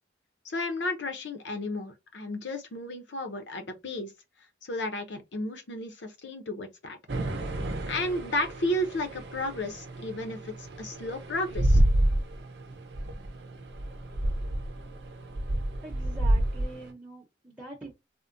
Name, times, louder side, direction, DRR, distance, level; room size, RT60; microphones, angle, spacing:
voice 1, 0.4-4.1 4.6-7.0 7.9-11.8, left 1 dB, 70° left, 0.6 m, -33 dB
sound 1, 7.1-16.9, right 1 dB, 60° right, 0.6 m, -29 dB
voice 2, 15.8-17.9, right 3 dB, 10° right, 0.6 m, -44 dB
3.6 x 2.1 x 2.5 m
head